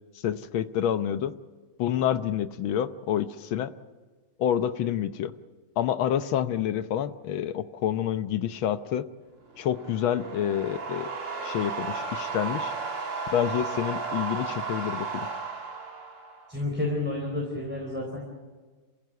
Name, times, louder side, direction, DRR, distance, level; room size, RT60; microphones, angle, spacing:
voice 1, 0.2-1.3 1.8-3.7 4.4-5.3 5.8-9.0 9.6-11.1 11.4-12.7 13.3-15.3, left 10 dB, 70° left, 12 dB, 1.6 m, -28 dB
sound 1, 9.5-16.6, right 4 dB, 60° right, 4.6 m, -34 dB
voice 2, 16.5-18.2, left 2 dB, 5° right, -2 dB, 4.0 m, -30 dB
28.0 x 16.0 x 8.1 m, 1.4 s
omnidirectional pair, 2.4 m